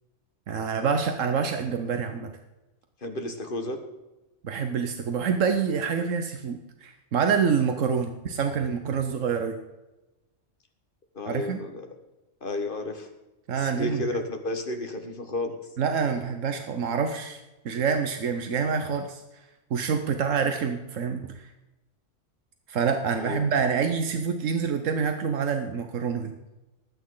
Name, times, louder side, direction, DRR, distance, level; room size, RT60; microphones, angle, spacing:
voice 1, 0.5-2.3 4.4-9.6 11.3-11.6 13.5-14.0 15.8-17.4 17.6-19.2 19.7-21.5 22.7-26.3, right 6 dB, 85° right, 6 dB, 1.3 m, -27 dB
voice 2, 3.0-3.8 11.1-11.9 12.4-13.1 13.6-15.6 23.2-23.5, left 2 dB, 45° left, 5 dB, 1.7 m, -32 dB
20.0 x 8.6 x 3.9 m, 1.0 s
omnidirectional pair, 1.3 m